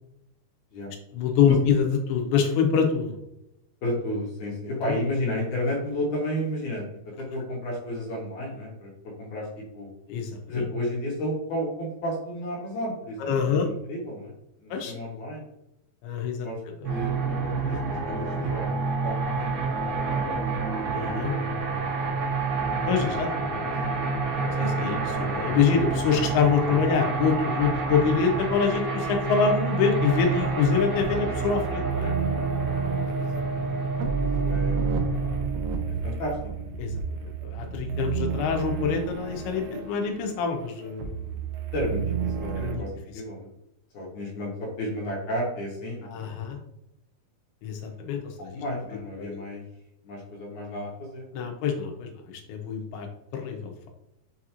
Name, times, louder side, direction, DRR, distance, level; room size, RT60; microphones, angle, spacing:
voice 1, 1.1-3.2 4.8-4.9 10.1-10.7 13.2-13.7 14.7-14.9 16.0-16.5 18.3-18.4 20.9-21.3 22.9-23.3 24.6-32.1 36.8-36.9 37.2-41.4 42.6-42.8 46.0-46.6 47.6-48.6 49.2-49.4 51.3-53.1 53.3-53.9, left 6 dB, 90° left, 3 dB, 2.7 m, -25 dB
voice 2, 3.8-6.8 7.2-8.9 9.2-9.5 9.7-9.9 10.5-14.3 14.6-15.4 16.4-16.6 16.9-21.9 23.1-24.1 26.6-26.8 33.2-33.7 34.0-34.8 36.0-36.7 41.7-43.5 43.9-46.1 47.8-48.2 48.5-49.6 50.0-51.5, left 1 dB, 70° left, -3 dB, 1.9 m, -33 dB
sound 1, 16.8-35.4, right 4 dB, 55° right, 1.7 m, -28 dB
sound 2, 30.3-42.8, right 6 dB, 85° right, 2.5 m, -31 dB
6.8 x 2.5 x 2.9 m, 0.85 s
omnidirectional pair, 4.4 m